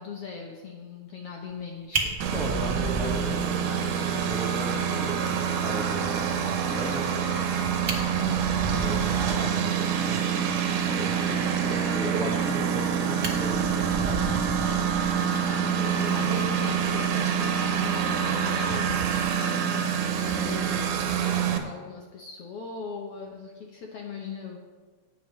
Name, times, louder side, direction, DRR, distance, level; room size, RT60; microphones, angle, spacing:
voice 1, 0.0-2.2 15.3-19.7 20.1-24.6, left 5 dB, 65° left, 0 dB, 1.7 m, -40 dB
Fire, 1.5-1.6 1.9-3.9 4.2-4.3 4.7-4.8 5.1-5.2 7.4-7.5 7.8-9.5 12.3-12.8 13.2-15.4 16.7-16.9, right 4 dB, 45° right, 1.3 m, -33 dB
voice 2, 2.0-7.4 8.0-10.4 10.8-14.3, right 1 dB, ahead, -3 dB, 1.1 m, -36 dB
Engine, 2.2-21.6, right 7 dB, 80° right, 2.3 m, -26 dB
17.5 x 7.3 x 3.2 m, 1.4 s
omnidirectional pair, 3.5 m